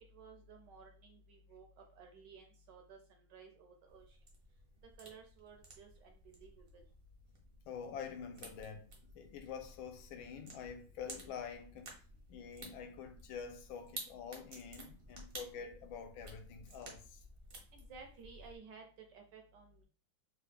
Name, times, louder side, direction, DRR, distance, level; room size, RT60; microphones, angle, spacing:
voice 1, 0.0-4.2 5.0-6.8 17.7-19.8, right 5 dB, 70° right, 1.1 m, -56 dB
sound 1, 3.9-18.6, right 2 dB, 50° right, 0.6 m, -54 dB
voice 2, 7.7-8.9 9.1-11.9 12.3-17.2, left 7 dB, 80° left, 1.3 m, -47 dB
3.8 x 2.3 x 3.3 m
omnidirectional pair, 2.3 m